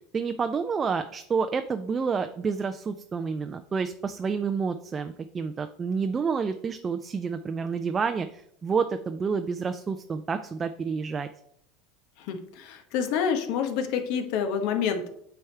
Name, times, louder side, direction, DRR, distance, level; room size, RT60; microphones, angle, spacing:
voice 1, 0.1-11.3, right 5 dB, 25° right, 8 dB, 0.4 m, -29 dB
voice 2, 12.2-15.1, left 7 dB, 65° left, 7 dB, 1.0 m, -28 dB
8.7 x 3.5 x 4.4 m, 0.71 s
supercardioid pair, 110°, 0 cm